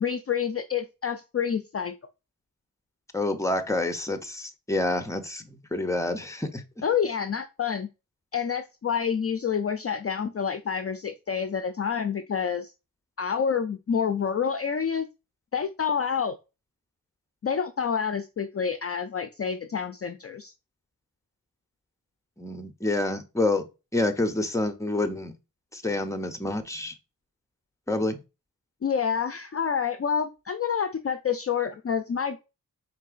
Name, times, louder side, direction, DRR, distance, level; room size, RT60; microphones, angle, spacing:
voice 1, 0.0-2.0 6.8-7.9 8.3-12.7 13.2-15.1 15.5-16.4 17.4-20.5 28.8-32.4, left 7 dB, 40° left, 0.4 m, -28 dB
voice 2, 3.1-6.6 22.4-23.6 23.9-25.3 25.7-26.9 27.9-28.2, left 2 dB, 10° left, 0.7 m, -28 dB
4.5 x 3.8 x 2.4 m
wide cardioid pair, 85°, 36 cm